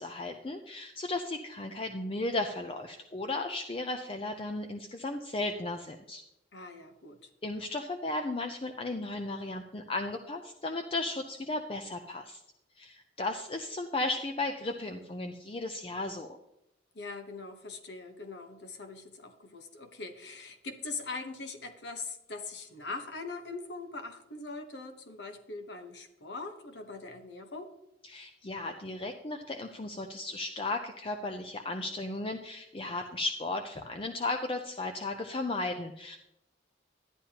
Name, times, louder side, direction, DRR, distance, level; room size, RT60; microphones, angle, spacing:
voice 1, 0.0-6.2 7.4-12.4 12.8-16.4 28.1-36.2, left 2 dB, 30° left, 5 dB, 0.5 m, -35 dB
voice 2, 6.5-7.3 16.9-27.7, left 3 dB, 70° left, 7 dB, 1.1 m, -42 dB
11.5 x 9.9 x 2.9 m, 0.86 s
head